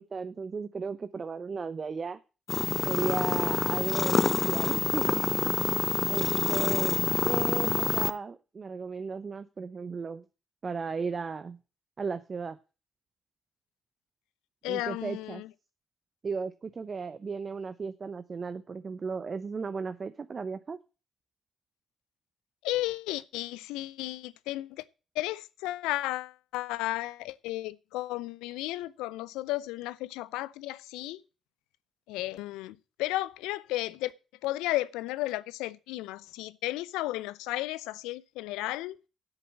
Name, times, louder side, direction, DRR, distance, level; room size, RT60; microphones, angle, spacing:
voice 1, 0.0-2.2 2.8-5.2 6.1-7.0 7.3-10.2 10.6-11.6 12.0-12.6 14.7-15.4 16.2-20.8, right 5 dB, 45° right, 0.8 m, -35 dB
sound 1, 2.5-8.1, left 4 dB, 40° left, 0.7 m, -27 dB
voice 2, 14.6-15.5 22.6-24.8 25.1-31.2 32.1-34.1 34.4-39.0, left 17 dB, 80° left, 0.5 m, -34 dB
8.1 x 7.0 x 8.6 m
hypercardioid pair, 45°, 0 cm